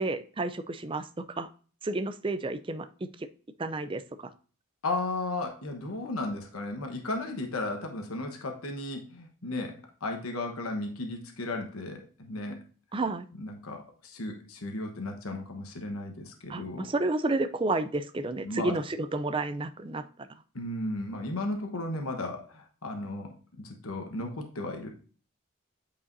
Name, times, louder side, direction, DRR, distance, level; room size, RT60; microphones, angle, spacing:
voice 1, 0.0-1.5 1.8-2.9 3.2-3.3 3.6-4.0 12.9-13.3 16.5-20.3, right 2 dB, 25° right, 10 dB, 0.4 m, -31 dB
voice 2, 4.8-12.6 13.4-16.9 18.4-18.8 20.5-24.9, left 2 dB, 80° left, 3 dB, 1.1 m, -35 dB
8.6 x 4.9 x 2.6 m, 0.40 s
head